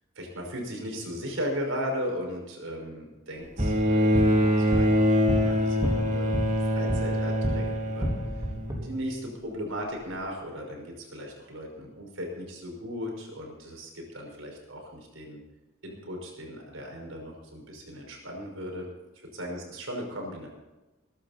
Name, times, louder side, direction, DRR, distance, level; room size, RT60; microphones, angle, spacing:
voice 1, 0.2-6.3 6.7-8.1 8.8-15.4 15.8-18.9 19.1-20.5, equal, 75° right, 1 dB, 5.5 m, -37 dB
sound 1, 3.4-7.6 7.9-8.8, equal, 20° right, 3.9 m, -31 dB
Bowed string instrument, 3.6-9.0 10.2-10.3, equal, 40° right, 2.4 m, -25 dB
22.0 x 11.5 x 4.3 m, 1.1 s
head